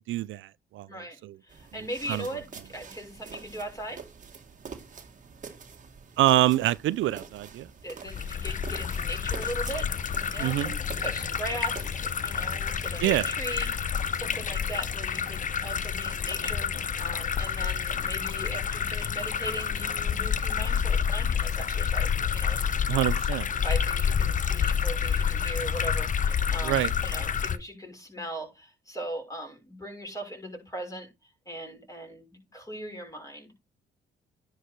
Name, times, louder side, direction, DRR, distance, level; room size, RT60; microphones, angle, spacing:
voice 1, 0.1-0.9 1.2-1.3 2.1-2.2 6.2-7.7 10.4-10.7 13.0-13.3 22.9-23.5 26.6-26.9, right 15 dB, 75° right, 0.5 m, -25 dB
voice 2, 0.9-4.0 7.8-22.8 23.6-33.5, right 1 dB, 15° left, 5.9 m, -39 dB
sound 1, 1.5-12.1, right 5 dB, 40° right, 1.9 m, -46 dB
sound 2, 8.1-27.6, left 7 dB, 40° left, 0.8 m, -29 dB
10.0 x 4.8 x 4.7 m
cardioid pair, 90°, 20 cm